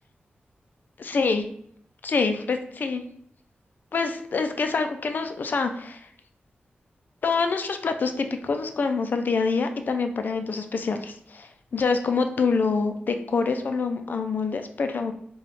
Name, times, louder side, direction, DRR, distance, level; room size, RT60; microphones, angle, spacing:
voice 1, 1.0-1.4 2.0-3.0 3.9-6.0 7.2-15.1, left 4 dB, 55° left, 7 dB, 0.4 m, -26 dB
4.9 x 2.3 x 3.1 m, 0.67 s
wide cardioid pair, 140°, 4 cm